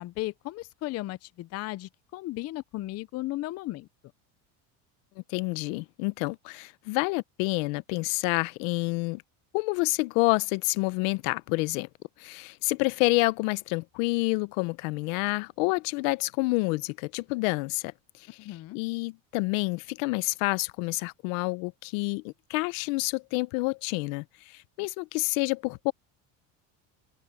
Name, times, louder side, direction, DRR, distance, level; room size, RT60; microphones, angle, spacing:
voice 1, 0.0-3.9 18.4-18.8, left 17 dB, 40° left, 0.5 m, -35 dB
voice 2, 5.2-9.2 9.5-11.9 12.2-18.3 18.7-25.9, left 25 dB, 85° left, 0.7 m, -28 dB
open air
cardioid pair, 135°, 38 cm